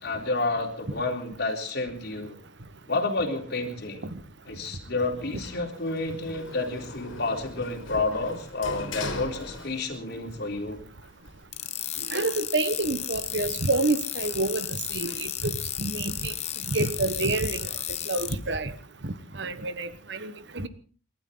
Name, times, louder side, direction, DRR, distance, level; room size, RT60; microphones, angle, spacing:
voice 1, 0.0-2.4 2.9-4.0 4.5-10.8, left 3 dB, 55° left, 3 dB, 3.8 m, -30 dB
Sliding door, 5.4-10.2 10.5-11.4, left 2 dB, 70° left, 3.4 m, -39 dB
sound 1, 11.5-18.3, left 11 dB, 35° left, 0.9 m, -33 dB
voice 2, 12.1-16.3 16.7-17.7 18.1-18.7 19.0-20.7, right 2 dB, 60° right, 13 dB, 1.3 m, -28 dB
29.0 x 12.5 x 3.9 m, 0.42 s
head